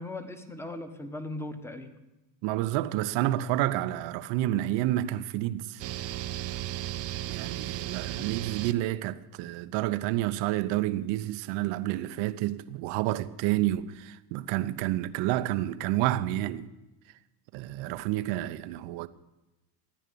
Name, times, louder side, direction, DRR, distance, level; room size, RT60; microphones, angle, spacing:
voice 1, 0.0-1.9 8.2-8.3, left 2 dB, 5° left, 1.3 m, -38 dB
voice 2, 2.4-5.8 7.3-16.7 17.5-19.1, right 14 dB, 70° right, 0.8 m, -29 dB
sound 1, 5.8-8.7, right 13 dB, 35° right, 0.4 m, -35 dB
14.5 x 9.7 x 6.9 m
supercardioid pair, 120°, 48 cm